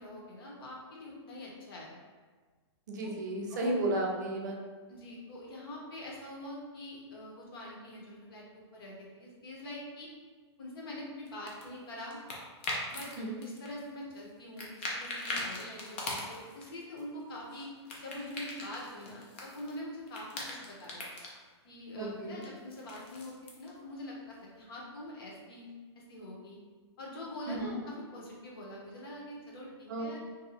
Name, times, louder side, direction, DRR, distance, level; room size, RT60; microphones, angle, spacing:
voice 1, 0.0-1.9 3.0-3.1 3.5-3.8 4.9-10.1 10.6-12.2 12.9-21.1 21.6-25.7 26.1-26.6 27.0-30.2, left 1 dB, 55° left, -3 dB, 0.8 m, -44 dB
voice 2, 2.9-4.6 13.2-13.4 22.0-22.4 27.5-27.8 29.9-30.2, right 1 dB, 40° right, -1 dB, 0.4 m, -33 dB
sound 1, 11.3-13.1 13.4-14.3 14.6-16.6 17.0-19.8 20.0-21.3 22.4-23.7, left 2 dB, 20° left, 0.3 m, -40 dB
2.7 x 2.2 x 3.9 m, 1.4 s
hypercardioid pair, 180°, 15 cm